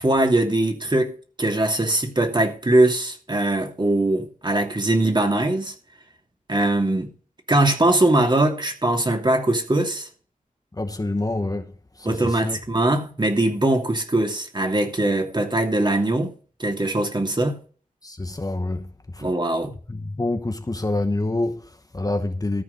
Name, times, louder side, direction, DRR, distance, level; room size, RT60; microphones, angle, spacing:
voice 1, 0.0-5.7 6.5-7.1 7.5-10.1 12.0-16.3 16.6-17.6 19.2-19.7, right 1 dB, 30° right, 2.7 m, -21 dB
voice 2, 10.7-12.6 18.0-19.3 19.9-22.6, left 2 dB, 25° left, 1.1 m, -27 dB
14.0 x 4.9 x 8.2 m
wide cardioid pair, 60°, 14 cm